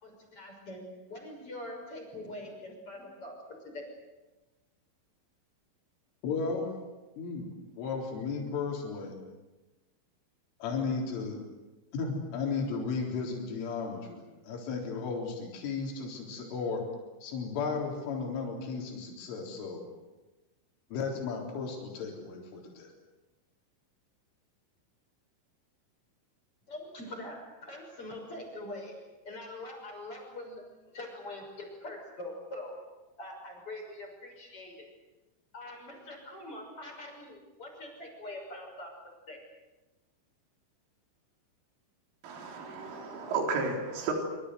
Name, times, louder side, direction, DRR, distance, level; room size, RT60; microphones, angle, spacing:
voice 1, 0.0-0.8 1.1-3.3 3.6-3.9 26.7-29.0 29.2-30.6 30.9-32.8 33.1-34.9 35.5-38.9 39.3-39.4, left 1 dB, 30° left, 2 dB, 6.7 m, -43 dB
voice 2, 6.2-6.7 7.2-7.5 7.8-9.2 10.6-11.4 11.9-16.8 17.2-19.8 20.9-22.9, left 4 dB, 75° left, 0 dB, 6.4 m, -34 dB
voice 3, 42.2-44.1, right 4 dB, 80° right, 2 dB, 6.4 m, -33 dB
26.0 x 25.5 x 8.1 m, 1.1 s
omnidirectional pair, 5.7 m